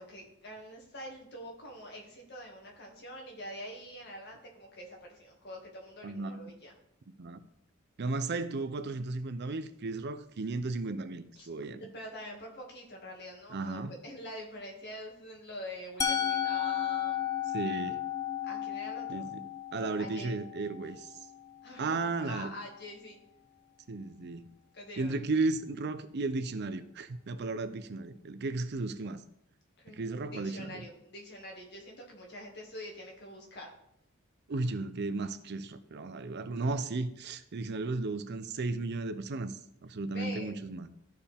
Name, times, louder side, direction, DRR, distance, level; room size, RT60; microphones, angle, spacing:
voice 1, 0.0-6.7 11.4-11.5 11.8-17.2 18.4-19.3 20.0-20.3 21.6-23.2 24.7-25.2 29.8-33.7 40.0-40.6, equal, 55° left, 2.1 m, -45 dB
voice 2, 6.0-6.4 7.2-7.4 8.0-11.8 13.5-13.9 17.5-18.0 19.1-19.5 19.7-21.1 21.8-22.5 23.9-24.5 25.0-29.2 29.9-30.8 34.5-40.9, right 3 dB, 50° right, 0.5 m, -34 dB
Musical instrument, 16.0-21.9, left 9 dB, 15° left, 0.3 m, -34 dB
13.0 x 4.7 x 3.5 m
head